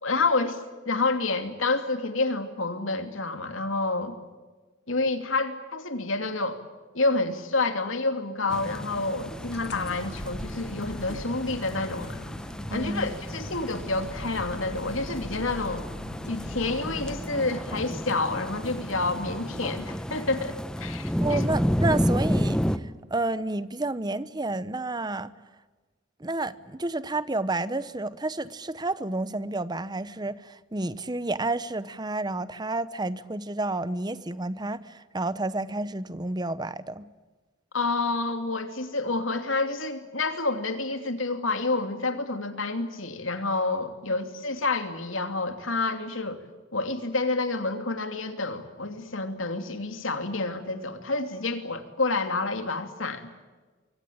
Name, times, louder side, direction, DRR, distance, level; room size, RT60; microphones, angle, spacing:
voice 1, 0.0-4.1 4.9-6.6 6.9-12.2 12.7-15.8 16.3-21.4 37.7-46.4 46.7-53.3, left 3 dB, 90° left, 7 dB, 2.9 m, -29 dB
sound 1, 8.5-22.8, equal, 5° left, 0.9 m, -31 dB
sound 2, 9.2-17.2, left 1 dB, 55° left, 1.9 m, -41 dB
voice 2, 12.7-13.1 21.2-25.3 26.2-37.1, right 2 dB, 20° right, 15 dB, 0.9 m, -30 dB
25.0 x 24.5 x 8.7 m, 1.3 s
head